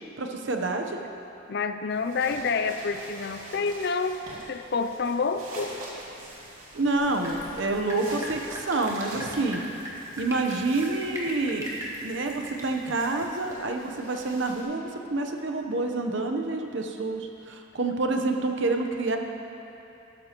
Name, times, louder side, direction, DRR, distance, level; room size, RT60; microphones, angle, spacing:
voice 1, 0.2-1.0 6.7-9.6 10.2-11.7 12.0-19.2, right 2 dB, 60° right, 3 dB, 0.9 m, -28 dB
voice 2, 1.5-5.7, left 4 dB, 50° left, 9 dB, 0.4 m, -28 dB
sound 1, 1.9-14.6, right 1 dB, 90° right, 2.6 m, -45 dB
Drip, 7.0-13.5, equal, 15° right, 1.4 m, -40 dB
13.0 x 13.0 x 3.0 m, 2.9 s
head